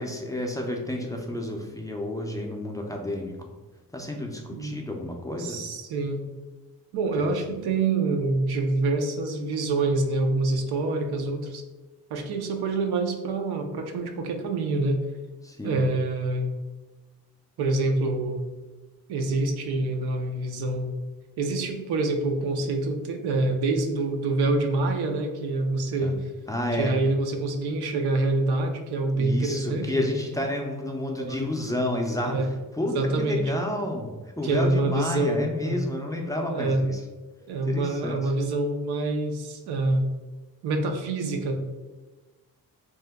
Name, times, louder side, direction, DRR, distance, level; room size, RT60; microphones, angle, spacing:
voice 1, 0.0-3.5 3.9-5.6 7.2-7.3 15.4-15.9 26.0-26.1 26.5-26.9 29.1-32.4 32.8-37.0 37.7-38.3, left 1 dB, 10° left, 0 dB, 0.4 m, -30 dB
voice 2, 5.4-6.3 6.9-11.6 12.1-15.0 15.6-16.5 17.6-18.4 19.1-20.9 21.4-26.2 26.8-30.1 31.2-31.5 32.3-32.5 32.9-33.5 34.4-35.8 36.5-36.8 37.5-40.1 40.6-41.6, right 2 dB, 85° right, 5 dB, 0.5 m, -26 dB
2.8 x 2.1 x 3.4 m, 1.2 s
cardioid pair, 80°, 38 cm